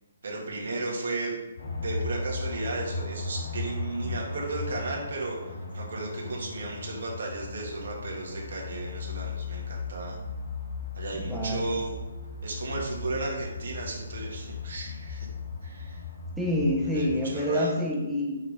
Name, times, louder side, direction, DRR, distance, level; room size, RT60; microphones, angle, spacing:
voice 1, 0.2-1.3 1.8-10.2 11.0-12.0 12.4-15.3 15.6-16.0 16.8-17.7, right 2 dB, 65° right, -2 dB, 1.7 m, -34 dB
sound 1, 1.6-17.3, left 3 dB, 75° left, 2.1 m, -36 dB
voice 2, 11.2-11.8 16.4-18.4, left 1 dB, ahead, -3 dB, 0.7 m, -27 dB
5.9 x 5.5 x 3.5 m, 1.1 s
hypercardioid pair, 165°, 0 cm